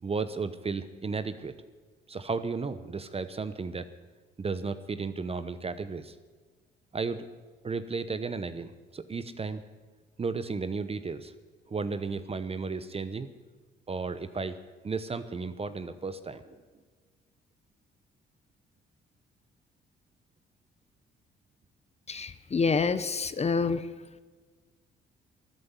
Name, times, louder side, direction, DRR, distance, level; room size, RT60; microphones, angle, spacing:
voice 1, 0.0-1.5 2.1-3.9 4.4-6.1 6.9-7.3 7.6-9.6 10.2-11.3 11.7-13.3 13.9-14.6 14.8-16.6, right 4 dB, 30° right, 12 dB, 0.9 m, -34 dB
voice 2, 22.1-23.9, left 5 dB, 35° left, 14 dB, 0.9 m, -27 dB
14.0 x 9.7 x 9.8 m, 1.4 s
cardioid pair, 90°, 20 cm